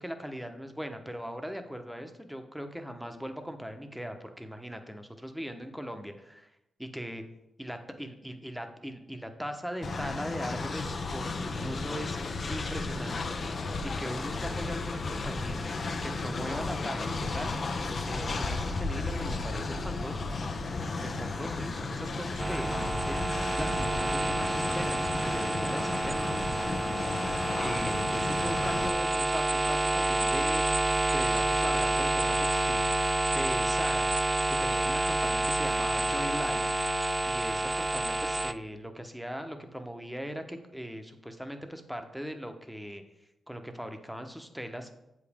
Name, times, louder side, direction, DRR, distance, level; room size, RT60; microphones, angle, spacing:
voice 1, 0.0-6.5 6.8-7.2 7.6-12.2 12.5-13.2 13.8-15.6 16.0-17.6 18.0-20.3 21.0-25.0 25.2-26.2 27.6-32.9 33.3-34.1 34.5-36.7 37.2-43.0 43.5-44.9, equal, ahead, 6 dB, 1.0 m, -39 dB
Train, 9.8-28.9, left 3 dB, 55° left, 0.6 m, -34 dB
sound 1, 22.4-38.5, right 2 dB, 25° right, 0.3 m, -28 dB
7.6 x 5.1 x 3.6 m, 0.89 s
supercardioid pair, 50°, 0 cm